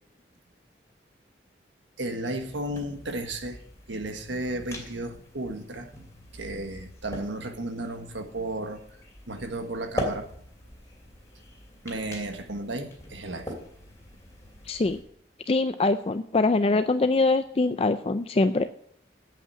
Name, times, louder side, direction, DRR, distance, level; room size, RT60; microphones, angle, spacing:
voice 1, 2.0-3.6 3.9-5.9 6.3-8.8 9.3-10.3 11.8-13.5, right 1 dB, 90° right, 6 dB, 1.5 m, -33 dB
sound 1, 2.4-15.0, left 1 dB, 15° left, 2.8 m, -41 dB
voice 2, 14.7-15.0 15.5-18.7, left 3 dB, 30° left, 10 dB, 0.4 m, -23 dB
8.3 x 8.3 x 8.3 m, 0.66 s
head